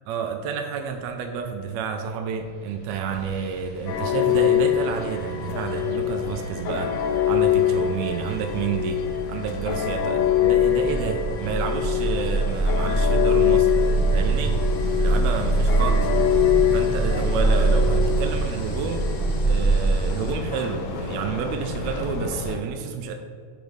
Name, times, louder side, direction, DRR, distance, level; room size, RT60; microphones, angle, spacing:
voice 1, 0.1-9.0 9.3-13.7 14.1-14.6 15.0-16.1 16.7-19.0 19.4-23.1, right 6 dB, 80° right, 4 dB, 1.7 m, -29 dB
sound 1, 2.5-2.7 3.1-20.3, right 2 dB, 60° left, 2.2 m, -25 dB
sound 2, 3.9-22.6, left 10 dB, 80° left, 1.3 m, -25 dB
8.0 x 3.9 x 5.0 m, 2.1 s
omnidirectional pair, 3.5 m